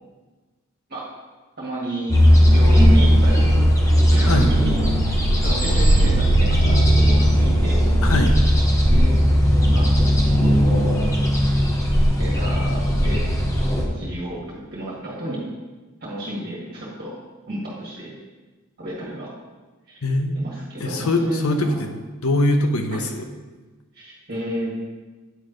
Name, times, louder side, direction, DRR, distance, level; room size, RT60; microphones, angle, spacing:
voice 1, 1.6-3.5 4.1-4.8 5.1-7.8 8.9-9.1 9.6-10.0 10.3-11.1 12.2-13.3 13.9-15.5 16.0-17.1 17.5-18.1 18.8-19.3 19.9-20.0 20.3-21.8 22.9-23.0 23.9-24.7, right 1 dB, 45° right, -5 dB, 1.7 m, -30 dB
sound 1, 2.1-13.8, equal, 15° left, 0.8 m, -17 dB
voice 2, 8.0-8.3 20.0-20.3 20.8-21.9 22.2-23.3, left 2 dB, 80° left, 5 dB, 0.8 m, -22 dB
9.1 x 3.2 x 5.0 m, 1.3 s
head